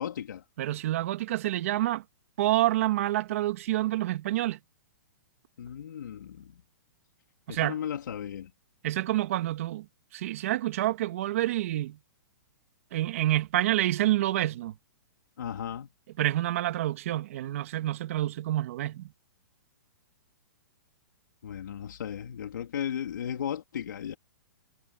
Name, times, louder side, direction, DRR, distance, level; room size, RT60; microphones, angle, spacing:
voice 1, 0.0-0.4 5.6-6.5 7.5-8.5 15.4-15.9 21.4-24.2, left 9 dB, 70° left, 2.9 m, -35 dB
voice 2, 0.6-2.0 2.4-4.6 7.5-7.8 8.8-9.9 10.1-12.0 12.9-14.7 16.2-19.1, right 15 dB, 45° right, 2.2 m, -28 dB
hypercardioid pair, 170°, 11 cm